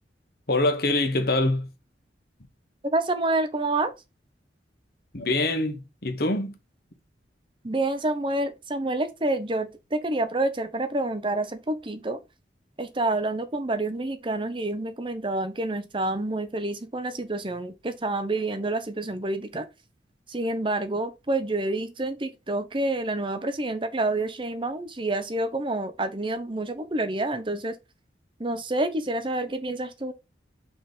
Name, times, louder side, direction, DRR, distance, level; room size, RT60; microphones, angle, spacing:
voice 1, 0.5-1.7 5.1-6.5, left 2 dB, 55° left, 1.4 m, -24 dB
voice 2, 2.9-3.9 7.6-12.2 12.8-19.6 20.3-27.7 28.4-30.1, right 2 dB, 30° right, 0.8 m, -28 dB
5.5 x 4.3 x 5.1 m
head